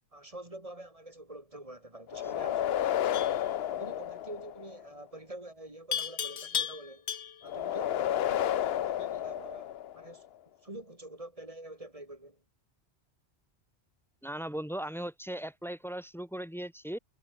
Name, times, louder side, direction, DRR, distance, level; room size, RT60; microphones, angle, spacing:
voice 1, 0.1-3.1 3.7-7.1 7.4-10.3 10.6-12.4, right 1 dB, 30° right, 4.4 m, -46 dB
sound 1, 2.1-4.9 7.4-10.2, left 11 dB, 70° left, 0.9 m, -31 dB
Livestock farm animals working animals, 3.1-3.5 5.9-7.5, left 8 dB, 90° left, 1.3 m, -34 dB
voice 2, 14.2-17.0, right 1 dB, ahead, 1.4 m, -38 dB
omnidirectional pair, 1.1 m